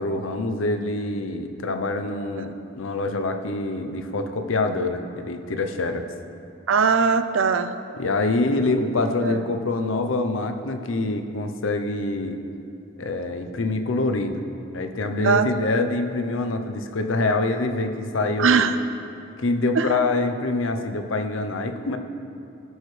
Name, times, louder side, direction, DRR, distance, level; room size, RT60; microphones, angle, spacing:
voice 1, 0.0-6.1 8.0-12.4 13.0-14.4 14.7-18.7 19.4-22.0, left 2 dB, 80° left, 7 dB, 0.7 m, -25 dB
voice 2, 6.7-7.7 9.2-9.4 15.2-15.5 18.4-18.7 19.8-19.9, right 5 dB, 75° right, 9 dB, 0.5 m, -20 dB
17.5 x 6.4 x 3.3 m, 2.6 s
head